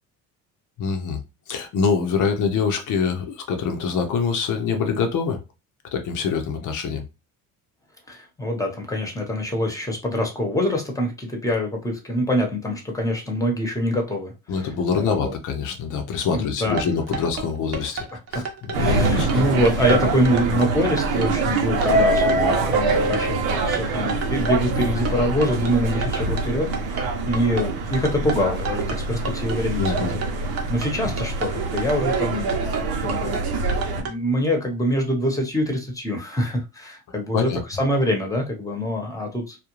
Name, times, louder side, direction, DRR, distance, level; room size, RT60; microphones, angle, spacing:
voice 1, 0.8-1.2 1.5-5.4 5.9-7.0 14.5-18.0 18.3-18.4 18.7-19.4 29.8-30.2 37.3-37.6, left 5 dB, 60° left, 0.7 m, -24 dB
voice 2, 8.1-15.3 16.3-16.9 18.3-18.4 18.8-30.2 30.7-32.6 33.0-33.4 34.0-39.6, equal, 10° left, 0.9 m, -25 dB
sound 1, 16.6-34.1, right 5 dB, 40° right, 0.8 m, -32 dB
sound 2, 18.7-34.0, right 3 dB, 85° right, 0.7 m, -24 dB
2.4 x 2.2 x 2.9 m
supercardioid pair, 95°, 36 cm